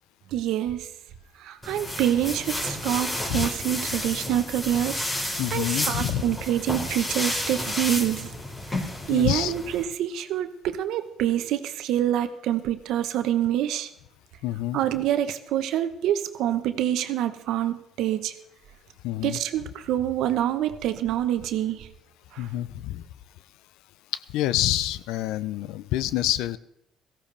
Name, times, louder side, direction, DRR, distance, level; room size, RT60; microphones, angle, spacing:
voice 1, 0.3-0.9 1.4-8.3 9.1-13.9 14.7-18.3 19.2-21.9 22.3-22.5, right 11 dB, 75° right, 9 dB, 1.0 m, -26 dB
sound 1, 1.6-9.9, left 1 dB, 30° left, 4.1 m, -31 dB
voice 2, 5.4-6.4 9.1-9.5 14.4-14.8 19.0-19.4 22.4-23.0 24.1-26.6, left 14 dB, 80° left, 17 dB, 0.5 m, -27 dB
17.5 x 14.5 x 3.4 m, 0.78 s
supercardioid pair, 70°, 0 cm